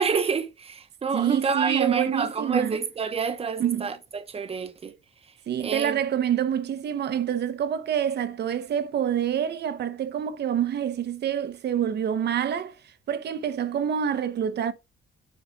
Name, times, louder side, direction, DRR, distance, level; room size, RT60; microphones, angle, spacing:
voice 1, 0.0-4.9 5.6-6.0, right 5 dB, 30° right, 1.1 m, -27 dB
voice 2, 1.1-2.8 3.6-3.9 5.5-12.8 13.1-14.7, right 9 dB, 55° right, 1.0 m, -27 dB
10.0 x 4.2 x 4.0 m
cardioid pair, 155°, 20 cm